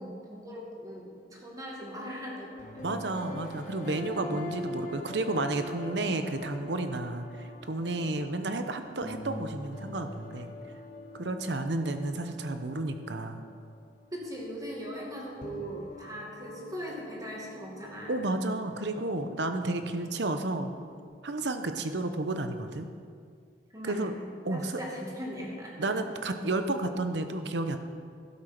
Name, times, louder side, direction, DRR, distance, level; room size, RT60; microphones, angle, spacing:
voice 1, 0.0-3.4 4.1-4.4 14.1-18.2 23.7-24.1 24.5-25.9, equal, 20° right, -2 dB, 2.1 m, -40 dB
sound 1, 2.1-14.8 15.1-21.0, left 1 dB, 45° left, 1.3 m, -44 dB
voice 2, 2.8-10.5 11.1-13.4 18.1-20.7 21.2-22.9 23.8-24.1 24.4-24.8 25.8-27.8, right 2 dB, 70° right, 8 dB, 0.9 m, -31 dB
12.5 x 8.1 x 5.9 m, 2.2 s
head